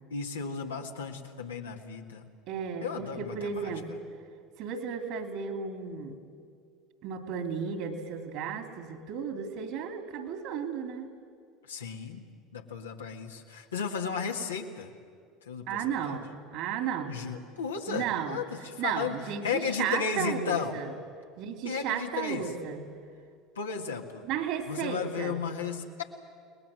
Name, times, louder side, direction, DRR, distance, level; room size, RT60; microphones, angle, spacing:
voice 1, 0.1-2.2 2.8-3.7 11.7-12.2 12.5-14.9 15.5-16.2 17.1-19.2 19.4-20.8 21.6-22.4 23.6-24.2 24.7-26.0, left 6 dB, 85° left, 2 dB, 1.9 m, -34 dB
voice 2, 2.5-4.0 4.6-6.2 7.0-11.1 15.7-17.2 17.9-18.4 18.8-20.9 21.4-22.9 24.2-25.4, right 7 dB, 60° right, 6 dB, 2.9 m, -34 dB
30.0 x 20.0 x 7.7 m, 2.2 s
hypercardioid pair, 70°, 0 cm